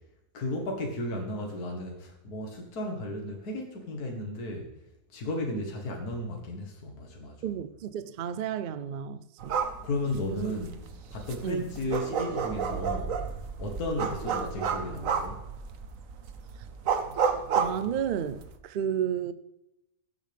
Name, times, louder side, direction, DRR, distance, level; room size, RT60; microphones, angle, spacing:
voice 1, 0.3-4.7 5.1-7.5 9.8-10.8 11.1-13.2 13.6-15.4, left 1 dB, 70° left, 2.0 m, -34 dB
voice 2, 7.4-9.5 10.3-10.5 11.4-11.6 17.6-19.3, right 9 dB, 80° right, 0.4 m, -32 dB
sound 1, 9.4-18.5, right 6 dB, 60° right, 1.2 m, -32 dB
16.0 x 8.1 x 3.4 m
omnidirectional pair, 1.7 m